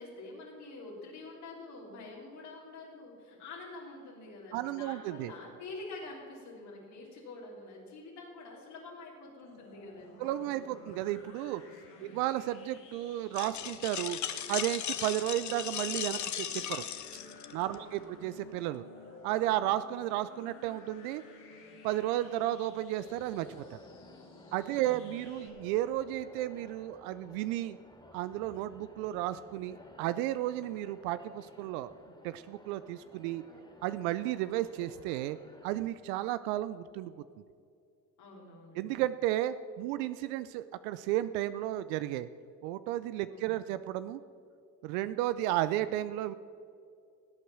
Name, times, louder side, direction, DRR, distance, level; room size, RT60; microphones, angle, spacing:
voice 1, 0.0-11.0 11.9-12.2 17.7-18.1 24.7-25.2 38.2-38.9 43.3-43.7, left 2 dB, 65° left, -4 dB, 3.7 m, -47 dB
voice 2, 4.5-5.3 10.2-11.6 12.0-14.2 14.5-16.8 17.5-18.8 19.2-21.2 21.8-23.8 24.5-27.8 28.1-31.9 32.2-33.4 33.8-35.4 35.6-37.1 38.8-42.3 42.6-44.2 44.8-46.3, right 14 dB, 75° right, 14 dB, 0.6 m, -33 dB
sound 1, 9.5-25.5, left 4 dB, 80° left, 2.6 m, -54 dB
sound 2, 13.3-17.7, left 9 dB, 40° left, 0.9 m, -37 dB
sound 3, 23.0-35.8, left 1 dB, 10° left, 2.9 m, -56 dB
18.0 x 8.4 x 6.1 m, 2.4 s
hypercardioid pair, 60°, 43 cm